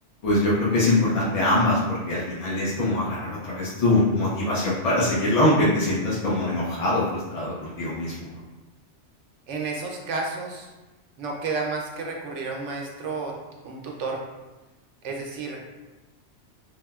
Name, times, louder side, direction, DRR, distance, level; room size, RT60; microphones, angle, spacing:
voice 1, 0.2-8.3, left 1 dB, 55° left, -7 dB, 0.4 m, -23 dB
voice 2, 9.5-10.7 11.2-13.3 13.6-14.2 15.0-15.6, right 3 dB, 75° right, 0 dB, 0.9 m, -31 dB
3.6 x 2.1 x 2.3 m, 1.1 s
omnidirectional pair, 1.2 m